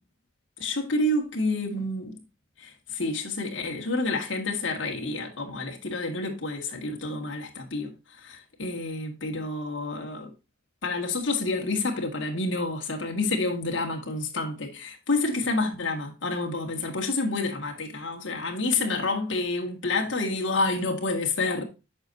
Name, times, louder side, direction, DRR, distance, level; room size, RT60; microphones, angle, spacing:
voice 1, 0.6-2.2 2.6-7.9 8.2-10.3 10.8-21.6, left 2 dB, 65° left, 1.8 m, -29 dB
8.5 x 6.0 x 2.6 m
head